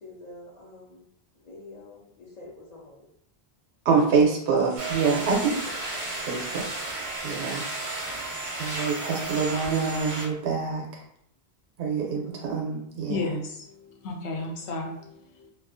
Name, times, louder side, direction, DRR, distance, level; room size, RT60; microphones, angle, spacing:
voice 1, 0.0-1.1 1.4-3.1 5.0-5.5, left 2 dB, 50° left, -4 dB, 0.5 m, -44 dB
voice 2, 3.8-5.5 6.3-6.7 7.2-7.6 8.6-11.0 11.8-13.2, right 5 dB, 75° right, 0 dB, 0.8 m, -25 dB
sound 1, 4.8-10.3, right 2 dB, 45° right, 0.5 m, -33 dB
voice 3, 13.1-15.5, left 2 dB, 80° left, 1 dB, 0.9 m, -33 dB
2.4 x 2.3 x 2.4 m, 0.72 s
omnidirectional pair, 1.1 m